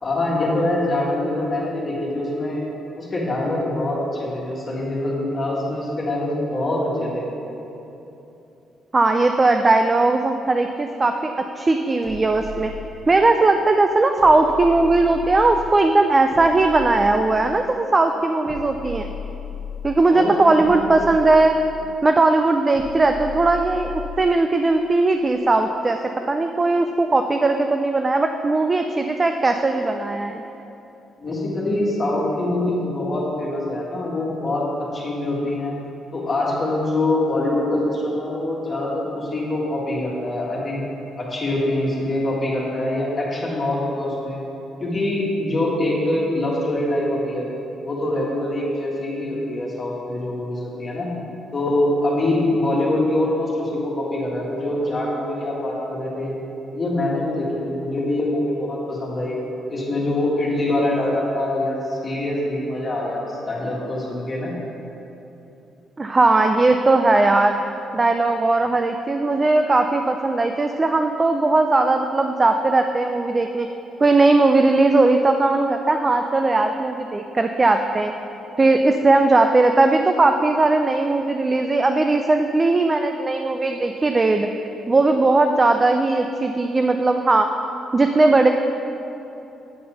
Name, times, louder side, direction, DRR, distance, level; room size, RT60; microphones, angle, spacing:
voice 1, 0.0-2.6 3.0-7.3 20.1-21.0 31.2-34.7 34.9-35.8 36.1-40.8 41.2-44.4 44.8-47.5 47.8-51.1 51.5-56.3 56.7-59.4 59.7-64.5, left 1 dB, 35° left, -4 dB, 1.8 m, -24 dB
voice 2, 8.9-12.7 13.1-19.1 19.8-21.6 22.0-26.0 26.3-30.4 66.0-67.6 67.9-73.7 74.0-78.1 78.6-84.5 84.9-87.5 87.9-88.5, right 2 dB, 25° right, 5 dB, 0.4 m, -18 dB
sound 1, 12.0-13.3 14.2-15.8 16.3-17.7 18.4-20.1 20.6-22.0 22.7-24.3, left 5 dB, 50° right, 2.0 m, -36 dB
8.7 x 4.2 x 6.4 m, 2.9 s
cardioid pair, 90°, 0 cm